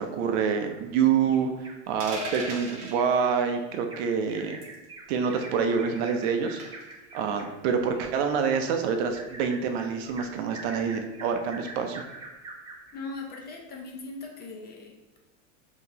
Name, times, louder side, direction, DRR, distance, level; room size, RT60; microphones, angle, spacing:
voice 1, 0.0-1.5 1.9-4.6 5.1-6.6 7.1-12.0, right 6 dB, 55° right, 5 dB, 0.6 m, -26 dB
Bird vocalization bird call bird song, 0.7-1.8 2.1-2.3 2.6-12.9 13.4-13.5 13.9-14.0, right 2 dB, 15° right, 0.6 m, -45 dB
sound 1, 2.0-3.0 4.6-4.8 6.6-6.9, right 2 dB, 40° right, 1.2 m, -36 dB
voice 2, 12.9-15.2, left 3 dB, 25° left, 1 dB, 0.6 m, -40 dB
5.7 x 2.9 x 2.7 m, 1.1 s
supercardioid pair, 145°, 37 cm